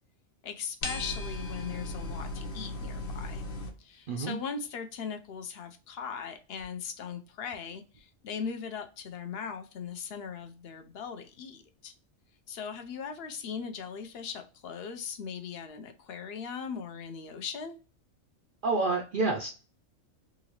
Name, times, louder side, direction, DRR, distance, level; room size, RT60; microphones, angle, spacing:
voice 1, 0.4-3.4 3.8-11.9 12.5-17.8, left 6 dB, 60° left, 7 dB, 0.7 m, -39 dB
sound 1, 0.8-3.7, left 2 dB, 80° left, 1.2 m, -36 dB
voice 2, 18.6-19.5, right 3 dB, 65° right, 2 dB, 0.5 m, -28 dB
3.8 x 2.5 x 2.9 m, 0.34 s
omnidirectional pair, 1.4 m